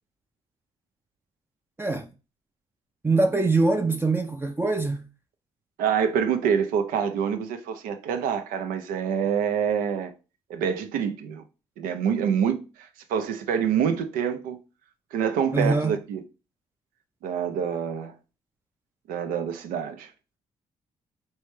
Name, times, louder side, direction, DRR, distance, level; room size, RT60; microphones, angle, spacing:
voice 1, 3.0-5.0 15.5-15.9, right 3 dB, 15° right, 0.5 m, -23 dB
voice 2, 5.8-10.1 10.5-11.4 11.8-14.6 15.1-16.2 17.2-18.1 19.1-20.1, right 7 dB, 80° right, 0.5 m, -26 dB
3.3 x 3.1 x 3.1 m
hypercardioid pair, 50°, 14 cm